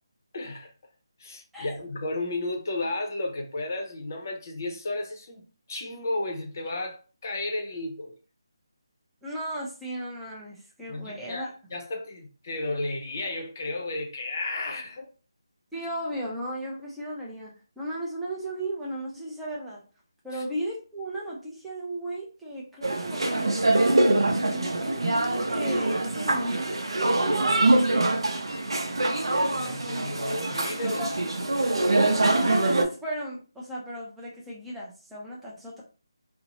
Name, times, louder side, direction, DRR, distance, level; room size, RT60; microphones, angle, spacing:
voice 1, 0.3-0.7 1.2-8.2 10.9-15.1 20.3-20.4 29.5-31.0, left 2 dB, 40° left, 0.6 m, -33 dB
voice 2, 9.2-11.5 15.7-19.8 20.2-26.7 30.2-30.4 30.8-31.3 32.1-35.8, right 1 dB, ahead, 0.4 m, -35 dB
sound 1, 22.8-32.8, right 2 dB, 80° right, 0.5 m, -24 dB
2.6 x 2.0 x 2.9 m
figure-of-eight pair, 170°, 3 cm